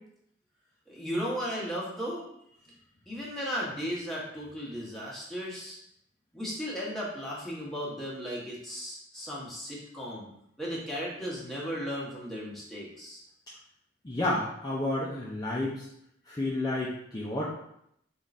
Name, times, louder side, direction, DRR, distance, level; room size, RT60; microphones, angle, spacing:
voice 1, 0.9-2.2 3.1-5.8 6.3-10.3 10.6-13.2, equal, ahead, -6 dB, 1.0 m, -35 dB
voice 2, 14.0-15.9 16.3-17.5, left 1 dB, 20° left, -6 dB, 0.5 m, -31 dB
3.6 x 2.5 x 4.1 m, 0.74 s
head